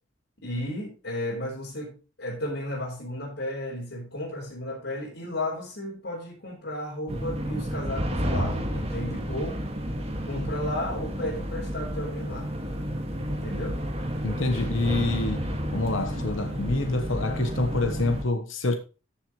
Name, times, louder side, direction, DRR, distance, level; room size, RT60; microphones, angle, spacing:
voice 1, 0.4-9.6 10.3-12.5 13.3-13.8, left 1 dB, 65° left, 5.0 m, -34 dB
sound 1, 7.1-18.2, equal, 30° right, 2.0 m, -31 dB
voice 2, 14.2-18.8, left 2 dB, 85° left, 1.2 m, -27 dB
14.0 x 7.4 x 3.2 m
head